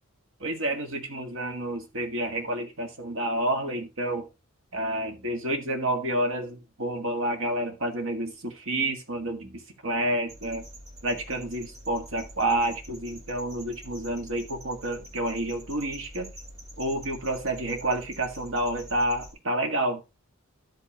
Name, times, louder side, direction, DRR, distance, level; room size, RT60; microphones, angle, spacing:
voice 1, 0.4-4.3 4.7-10.7 11.0-16.3 16.8-20.0, right 1 dB, 65° right, 1.7 m, -29 dB
sound 1, 10.3-19.3, equal, 30° right, 2.2 m, -46 dB
12.5 x 5.5 x 2.8 m
head